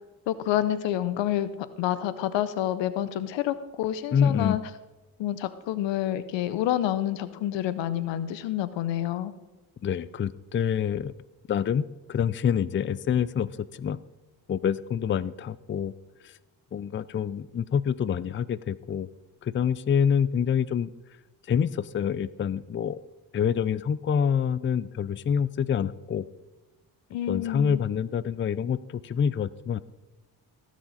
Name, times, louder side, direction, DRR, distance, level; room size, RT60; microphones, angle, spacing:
voice 1, 0.3-1.5 1.8-4.6 5.2-9.3 27.1-27.8, left 12 dB, 85° left, 14 dB, 0.8 m, -28 dB
voice 2, 4.1-4.6 9.8-11.1 11.5-11.8 12.1-14.0 14.5-15.9 16.2-16.4 16.7-19.1 19.4-20.9 21.5-23.0 23.3-26.2 27.3-29.8, left 7 dB, 30° left, 17 dB, 0.4 m, -26 dB
18.5 x 6.3 x 4.1 m, 1.1 s
supercardioid pair, 60°, 43 cm